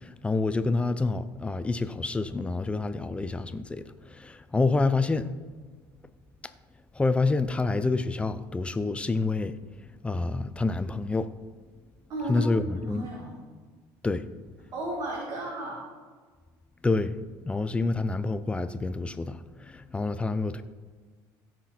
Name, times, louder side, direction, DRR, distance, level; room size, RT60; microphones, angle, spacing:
voice 1, 0.0-3.8 4.1-5.3 7.0-9.6 10.0-11.3 12.3-12.6 12.9-13.1 14.0-14.3 16.8-17.2 17.4-20.6, left 3 dB, 15° left, 0.6 m, -27 dB
voice 2, 12.1-12.5 12.8-13.4 14.7-15.9, right 1 dB, 50° right, 2.3 m, -34 dB
16.0 x 6.1 x 4.3 m
cardioid pair, 115°, 8 cm